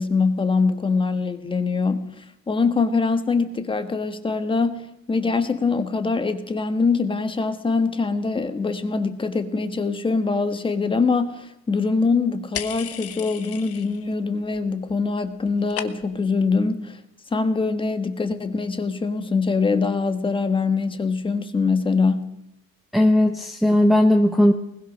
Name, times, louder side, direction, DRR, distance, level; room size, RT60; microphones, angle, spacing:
voice 1, 0.0-17.0 17.3-22.3, left 4 dB, 15° left, 9 dB, 1.4 m, -23 dB
sound 1, 12.5-14.1 14.4-15.0 15.2-16.3, left 10 dB, 45° left, 1.4 m, -35 dB
voice 2, 22.9-24.5, left 1 dB, ahead, 3 dB, 0.9 m, -17 dB
22.5 x 20.5 x 6.3 m, 0.81 s
cardioid pair, 160°, 32 cm